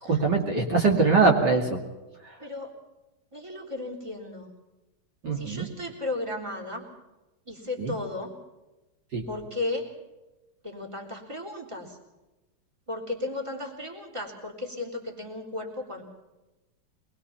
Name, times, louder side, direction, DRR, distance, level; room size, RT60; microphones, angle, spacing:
voice 1, 0.0-1.8 2.2-2.4 5.2-5.7 7.8-7.9 9.1-9.2, right 4 dB, 55° right, 1 dB, 3.1 m, -22 dB
voice 2, 2.4-2.7 3.3-4.5 5.3-6.8 7.5-8.4 9.3-9.9 10.6-12.0 12.9-16.0, left 2 dB, 15° right, 1 dB, 3.6 m, -35 dB
23.5 x 21.5 x 5.8 m, 1.1 s
omnidirectional pair, 2.2 m